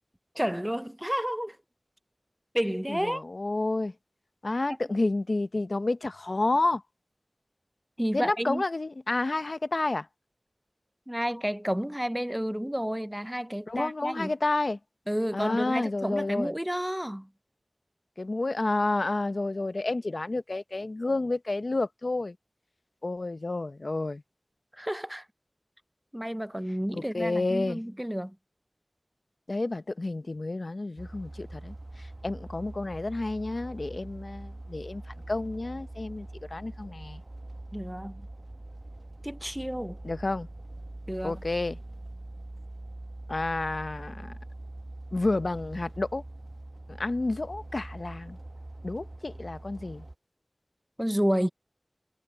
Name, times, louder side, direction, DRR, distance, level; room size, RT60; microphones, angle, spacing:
voice 1, 0.4-1.6 2.5-3.2 8.0-8.6 11.1-14.3 15.1-17.3 24.7-25.3 26.1-28.4 37.7-38.3 39.2-40.0 41.1-41.3 51.0-51.5, equal, 10° right, 0.4 m, -30 dB
voice 2, 2.9-3.9 4.4-6.8 8.1-10.1 13.7-14.8 15.3-16.5 18.2-22.4 23.0-24.2 26.9-27.8 29.5-35.0 35.3-37.2 40.0-40.5 41.2-41.8 43.3-44.3 45.1-46.2 46.9-48.4 48.8-50.0, left 2 dB, 85° left, 0.6 m, -30 dB
sound 1, 31.0-50.2, right 1 dB, 50° right, 0.8 m, -43 dB
wide cardioid pair, 40°, 0 cm